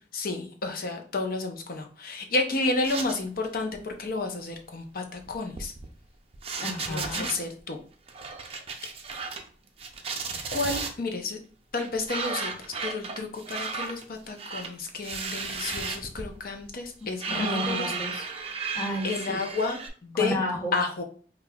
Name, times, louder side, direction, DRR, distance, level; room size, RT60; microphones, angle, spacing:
voice 1, 0.1-5.7 6.8-7.8 10.5-11.4 11.7-17.9 19.0-20.4 20.7-21.0, left 3 dB, 55° left, 4 dB, 0.6 m, -31 dB
sound 1, 2.8-3.5 3.7-3.9 5.2-6.1 6.3-7.4 8.1-9.5 9.8-10.9 11.8-19.9, right 4 dB, 35° right, 0.5 m, -34 dB
voice 2, 6.6-7.3 17.3-18.3 18.7-19.1 20.1-20.8, left 1 dB, 20° left, -2 dB, 0.9 m, -31 dB
5.1 x 2.3 x 2.3 m, 0.41 s
head